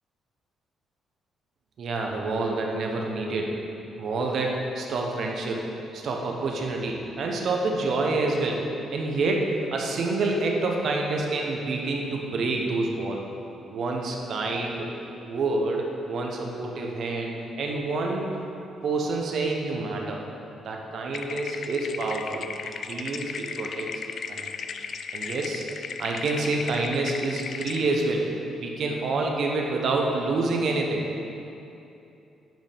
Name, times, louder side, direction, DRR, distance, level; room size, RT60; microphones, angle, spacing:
voice 1, 1.8-3.6 4.0-5.7 5.9-13.2 13.7-14.9 15.2-18.3 18.8-20.2 20.6-22.5 22.9-23.9 24.3-24.5 25.1-25.7 26.0-28.3 28.6-31.1, right 3 dB, 60° right, 0 dB, 1.0 m, -27 dB
sound 1, 21.1-27.8, left 6 dB, 55° left, 0.3 m, -36 dB
8.8 x 5.3 x 3.5 m, 2.8 s
cardioid pair, 90°, 0 cm